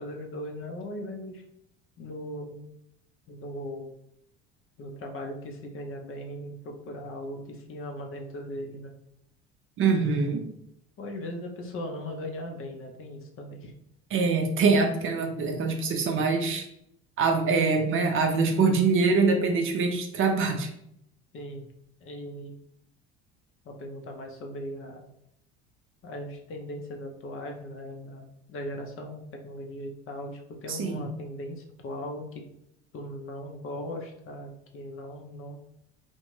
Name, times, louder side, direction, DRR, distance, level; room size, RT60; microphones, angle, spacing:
voice 1, 0.0-1.4 2.0-2.7 3.3-3.9 4.8-8.9 11.0-13.7 15.4-15.5 21.3-21.7 22.0-22.5 23.6-25.0 26.0-32.4 32.9-35.6, left 1 dB, 45° left, 2 dB, 0.6 m, -38 dB
voice 2, 9.8-10.5 14.1-16.7 17.2-20.7 30.7-31.1, right 4 dB, 45° right, 4 dB, 0.5 m, -24 dB
2.4 x 2.2 x 3.1 m, 0.76 s
hypercardioid pair, 70°, 31 cm